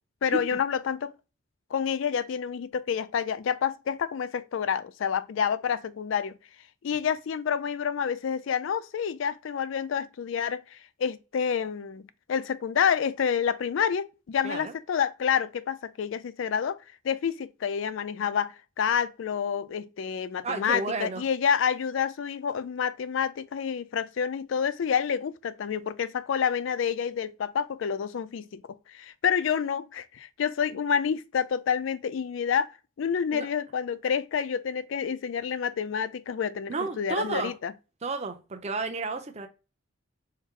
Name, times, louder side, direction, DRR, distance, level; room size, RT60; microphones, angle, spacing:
voice 1, 0.2-1.1 1.7-6.4 6.8-16.8 17.0-28.6 28.9-32.7 33.0-36.7 37.0-37.7, left 7 dB, 65° left, 0.4 m, -28 dB
voice 2, 20.4-21.2 33.3-33.5 36.7-37.6 38.0-39.5, right 3 dB, 35° right, 0.6 m, -32 dB
4.5 x 2.0 x 3.6 m
head